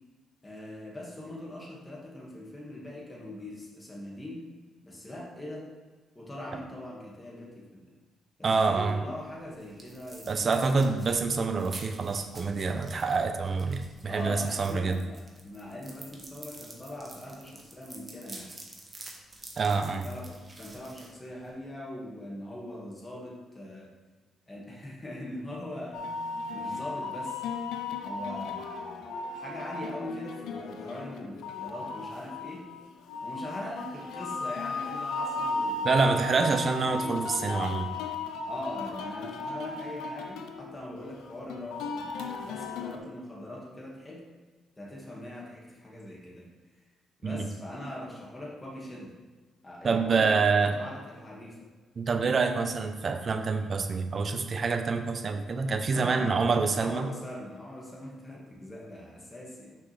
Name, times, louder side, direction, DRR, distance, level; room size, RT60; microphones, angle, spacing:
voice 1, 0.4-4.5 4.8-5.7 6.2-7.9 8.4-11.1 14.1-18.5 19.8-20.3 20.6-23.9 24.5-27.4 28.0-32.7 33.2-36.0 38.4-44.3 44.8-46.5 47.2-49.2 49.6-51.6 55.9-59.8, left 1 dB, 20° left, -4 dB, 1.9 m, -41 dB
voice 2, 8.4-9.0 10.3-15.0 19.6-20.1 35.8-37.9 47.2-47.5 49.8-50.7 52.0-57.1, right 4 dB, 45° right, 6 dB, 0.6 m, -27 dB
sound 1, 9.1-21.7, right 2 dB, 25° right, 1.2 m, -49 dB
sound 2, 25.9-43.0, left 3 dB, 85° left, 0.6 m, -35 dB
5.9 x 5.8 x 3.3 m, 1.3 s
cardioid pair, 90°, 0 cm